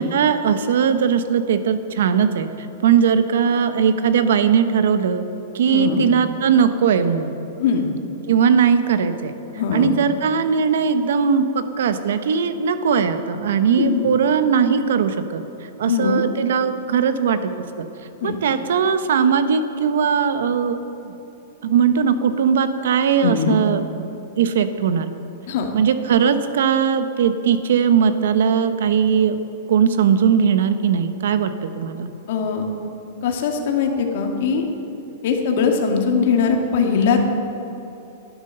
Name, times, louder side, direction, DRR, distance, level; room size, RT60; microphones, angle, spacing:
voice 1, 0.0-2.5 2.8-5.2 5.5-7.4 8.3-9.3 9.7-15.4 15.8-17.5 17.8-17.9 18.2-20.8 21.0-21.1 21.6-23.8 24.4-25.1 25.7-29.4 29.7-32.1, right 7 dB, 75° right, 10 dB, 1.0 m, -19 dB
voice 2, 5.7-6.1 7.6-7.9 9.6-9.9 13.8-14.1 15.9-16.2 18.2-18.4 23.2-23.6 25.5-25.7 32.3-32.7 33.2-34.7 35.2-37.3, left 6 dB, 60° left, 3 dB, 1.9 m, -20 dB
12.5 x 10.5 x 6.8 m, 2.9 s
hypercardioid pair, 150°, 0 cm